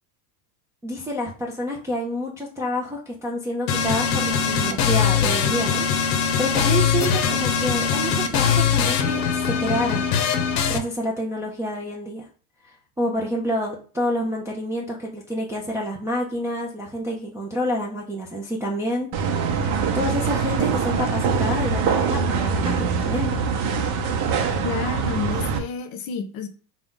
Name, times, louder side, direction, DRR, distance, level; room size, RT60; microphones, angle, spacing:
voice 1, 0.8-10.1 10.7-12.3 13.0-19.1 19.9-23.3, equal, 5° right, -3 dB, 0.3 m, -28 dB
sound 1, 3.7-10.8, left 7 dB, 85° left, 0.7 m, -21 dB
sound 2, 19.1-25.6, right 5 dB, 55° right, 0.8 m, -23 dB
voice 2, 24.6-26.5, left 6 dB, 45° left, 8 dB, 0.7 m, -30 dB
3.9 x 2.3 x 3.6 m, 0.38 s
hypercardioid pair, 95°, 49 cm